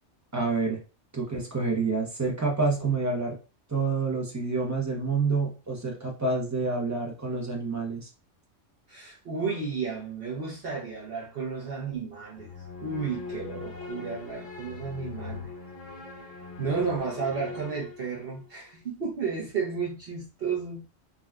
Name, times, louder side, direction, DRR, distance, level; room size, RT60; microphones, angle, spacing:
voice 1, 0.3-0.8 1.1-3.4 3.7-8.1, right 4 dB, 20° right, 0.5 m, -28 dB
voice 2, 8.9-12.5 12.8-15.5 16.2-20.9, right 5 dB, 55° right, 0.9 m, -33 dB
sound 1, 12.4-18.4, left 4 dB, 75° left, 1.6 m, -41 dB
3.7 x 2.3 x 2.3 m
omnidirectional pair, 1.3 m